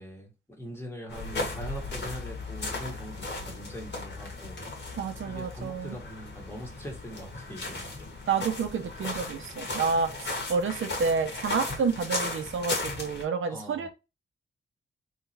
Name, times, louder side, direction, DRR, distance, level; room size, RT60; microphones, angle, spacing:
voice 1, 0.0-4.7 5.3-7.9 13.5-13.9, equal, 10° left, 1.3 m, -42 dB
sound 1, 1.1-13.2, left 2 dB, 60° left, 1.5 m, -36 dB
voice 2, 5.0-6.0 8.3-13.9, right 5 dB, 80° right, 0.7 m, -29 dB
3.9 x 3.1 x 2.7 m
wide cardioid pair, 150°, 20 cm